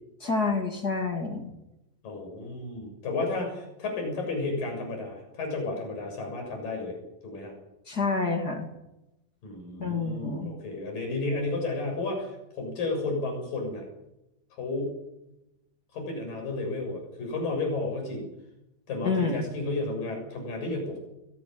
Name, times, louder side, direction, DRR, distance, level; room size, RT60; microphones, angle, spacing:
voice 1, 0.2-1.5 7.9-8.7 9.8-10.5 19.0-19.4, left 4 dB, 30° left, 4 dB, 2.7 m, -28 dB
voice 2, 2.0-7.0 7.2-7.5 9.4-13.9 14.5-15.0 15.9-18.3 18.9-21.0, left 2 dB, 65° left, 3 dB, 8.6 m, -32 dB
22.5 x 17.5 x 8.8 m, 0.91 s
omnidirectional pair, 4.3 m